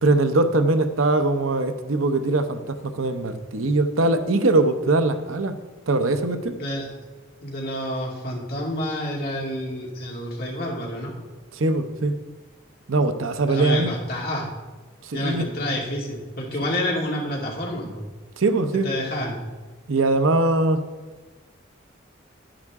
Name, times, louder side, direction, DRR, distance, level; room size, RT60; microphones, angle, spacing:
voice 1, 0.0-5.6 5.9-6.6 11.5-12.1 12.9-13.9 15.0-15.5 18.4-18.9 19.9-20.8, right 2 dB, 90° right, 9 dB, 0.8 m, -21 dB
voice 2, 6.5-6.9 7.4-11.1 13.5-14.5 15.1-18.0 18.7-19.4, left 1 dB, 50° left, -2 dB, 2.3 m, -28 dB
10.5 x 10.0 x 3.6 m, 1.3 s
head